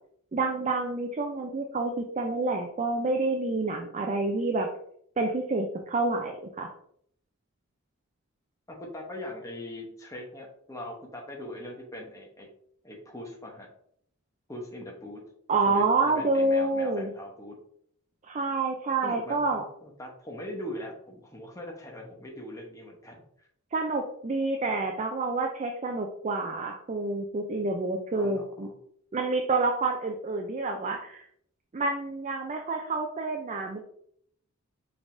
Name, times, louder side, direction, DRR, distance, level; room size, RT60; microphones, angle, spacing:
voice 1, 0.3-4.7 5.2-6.7 15.5-17.1 18.3-19.6 23.7-28.7 29.1-31.2 31.7-33.8, right 3 dB, 30° right, 3 dB, 0.4 m, -28 dB
voice 2, 8.7-12.5 12.8-13.7 14.5-15.2 15.7-17.6 19.0-23.5 28.1-28.7, left 1 dB, 15° left, 0 dB, 0.8 m, -41 dB
5.1 x 3.5 x 2.6 m, 0.67 s
head